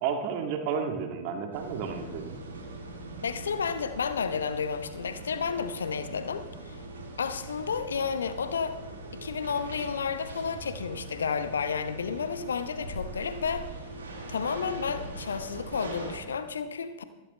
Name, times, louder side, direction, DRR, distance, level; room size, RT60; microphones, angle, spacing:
voice 1, 0.0-2.4, right 6 dB, 45° right, 3 dB, 2.2 m, -31 dB
sound 1, 1.5-16.2, right 2 dB, 70° right, 2.8 m, -41 dB
voice 2, 3.2-6.8 7.2-8.8 9.2-13.7 14.3-17.0, left 6 dB, 70° left, 10 dB, 1.1 m, -31 dB
16.0 x 15.0 x 3.2 m, 1.1 s
figure-of-eight pair, 90°, 0 cm